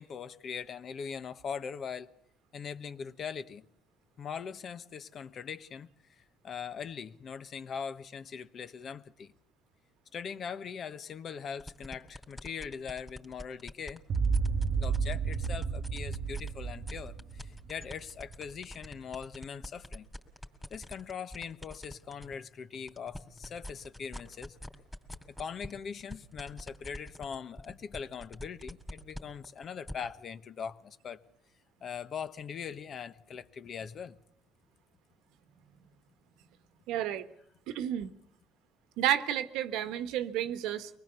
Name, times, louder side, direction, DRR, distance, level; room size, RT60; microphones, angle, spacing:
voice 1, 0.0-2.1 2.5-3.7 4.2-5.9 6.2-9.3 10.1-14.0 14.8-20.1 20.7-24.6 25.3-31.2 31.8-34.2, left 7 dB, 50° left, 1.1 m, -41 dB
sound 1, 11.6-16.5 16.8-22.3 22.7-29.9, equal, 5° left, 2.8 m, -44 dB
sound 2, 14.1-18.4, right 5 dB, 50° right, 0.9 m, -31 dB
voice 2, 36.9-37.2 37.7-38.1 39.0-40.9, right 11 dB, 85° right, 1.3 m, -31 dB
24.5 x 20.0 x 6.9 m
cardioid pair, 105°, 0 cm